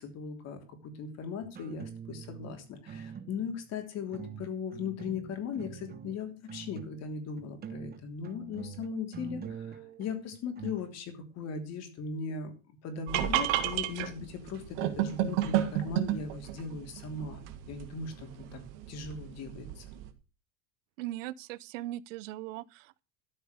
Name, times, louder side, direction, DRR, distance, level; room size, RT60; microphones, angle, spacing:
voice 1, 0.0-12.5 12.8-18.6 18.9-19.8, left 5 dB, 45° left, 3.3 m, -38 dB
sound 1, 1.4-2.5 2.9-3.7 4.1-7.1 7.4-10.8, right 7 dB, 25° right, 1.1 m, -44 dB
sound 2, 13.1-20.1, right 13 dB, 70° right, 1.9 m, -33 dB
voice 2, 21.0-23.0, right 15 dB, 85° right, 0.7 m, -39 dB
13.5 x 5.4 x 8.0 m
supercardioid pair, 140°, 37 cm